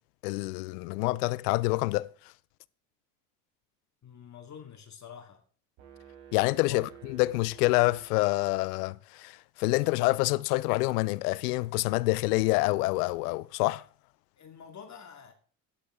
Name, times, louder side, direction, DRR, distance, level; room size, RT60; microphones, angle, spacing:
voice 1, 0.2-2.1 6.3-13.8, left 21 dB, 75° left, 0.7 m, -27 dB
voice 2, 4.0-5.4 6.7-6.8 14.4-15.3, left 7 dB, 35° left, 2.4 m, -47 dB
sound 1, 5.8-8.7, right 9 dB, 70° right, 4.3 m, -52 dB
13.0 x 10.5 x 3.8 m
hypercardioid pair, 75°, 47 cm